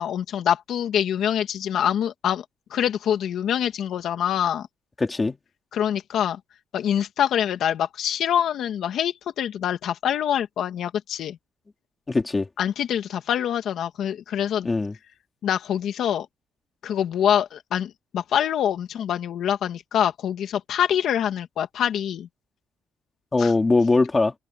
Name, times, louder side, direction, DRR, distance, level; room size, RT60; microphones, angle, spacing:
voice 1, 0.0-2.4 2.7-4.7 5.7-6.4 6.7-11.4 12.6-14.7 15.4-16.3 16.8-22.3 23.4-23.5, left 9 dB, 60° left, 1.9 m, -25 dB
voice 2, 5.0-5.4 12.1-12.5 14.6-14.9 23.3-24.3, left 3 dB, 15° left, 3.4 m, -21 dB
cardioid pair, 160°, 0 cm